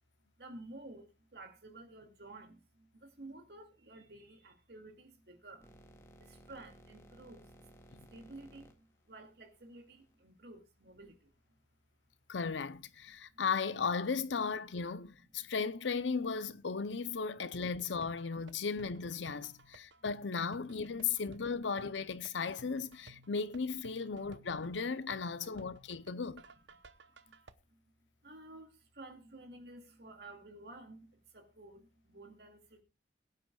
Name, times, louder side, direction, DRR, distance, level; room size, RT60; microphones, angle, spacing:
voice 1, 0.4-5.7 6.2-7.4 8.1-11.3 28.2-32.8, right 2 dB, 60° right, 2.4 m, -52 dB
sound 1, 5.6-10.1, right 1 dB, 15° left, 2.0 m, -58 dB
voice 2, 12.3-26.4, left 5 dB, 90° left, 0.7 m, -36 dB
sound 2, 17.5-27.5, right 2 dB, 90° right, 0.9 m, -58 dB
22.0 x 9.0 x 2.4 m
head